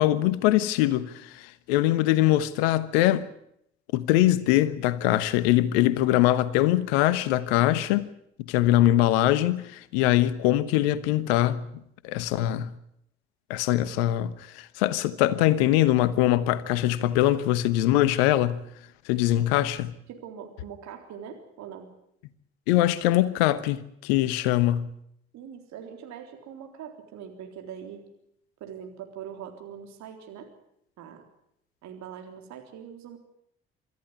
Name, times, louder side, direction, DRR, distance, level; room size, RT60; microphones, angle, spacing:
voice 1, 0.0-3.3 3.9-8.1 8.4-11.7 12.0-12.7 13.5-18.6 19.1-19.9 22.7-24.9, left 14 dB, 75° left, 1.1 m, -23 dB
voice 2, 19.3-19.7 20.1-21.9 25.3-28.0 28.6-30.5 31.0-31.2 31.8-33.2, right 8 dB, 60° right, 3.6 m, -42 dB
25.0 x 14.0 x 9.6 m
hypercardioid pair, 50°, 32 cm